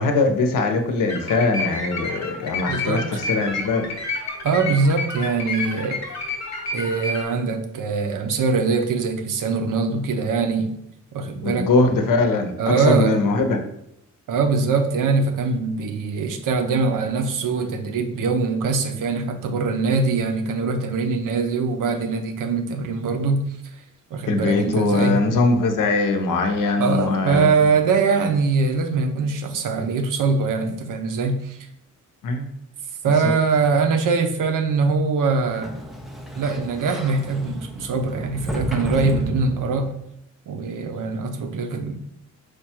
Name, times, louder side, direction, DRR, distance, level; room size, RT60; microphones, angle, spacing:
voice 1, 0.0-3.8 11.4-13.6 24.3-27.5 32.2-32.5 33.2-33.3, left 3 dB, 80° left, 5 dB, 0.7 m, -21 dB
sound 1, 1.1-7.2, left 3 dB, 55° left, 1.0 m, -30 dB
voice 2, 2.7-3.2 4.4-6.0 6.7-10.7 11.1-11.7 12.6-13.2 14.3-23.4 24.1-25.2 26.8-31.6 33.0-35.7 36.4-39.9 40.5-42.0, right 4 dB, 75° right, 7 dB, 0.6 m, -22 dB
Sliding door, 35.3-40.0, equal, ahead, 0.4 m, -31 dB
4.9 x 2.3 x 4.3 m, 0.76 s
wide cardioid pair, 180°, 32 cm